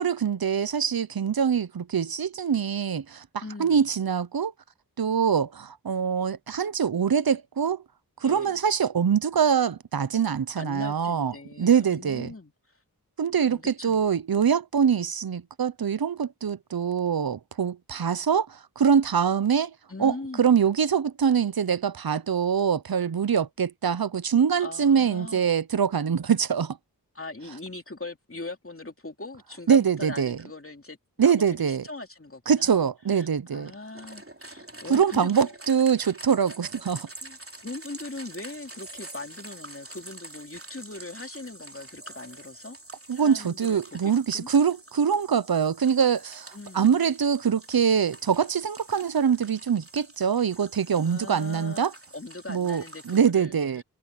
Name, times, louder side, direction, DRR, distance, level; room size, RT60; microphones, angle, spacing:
voice 1, 0.0-4.5 5.0-7.8 8.2-12.3 13.2-19.7 20.0-26.8 29.7-30.4 31.2-31.8 32.5-33.7 34.9-37.1 43.1-51.9 52.5-53.8, right 7 dB, 65° right, 0.8 m, -24 dB
voice 2, 3.4-3.9 8.2-8.6 10.6-12.5 13.4-14.1 19.9-20.4 24.6-25.5 27.1-31.0 31.2-32.8 33.2-35.5 37.2-42.8 43.1-44.5 46.5-46.9 51.0-51.9 52.1-53.8, left 2 dB, 35° left, 3.0 m, -40 dB
sound 1, 33.9-53.2, right 2 dB, 35° right, 3.5 m, -46 dB
wide cardioid pair, 40°, 39 cm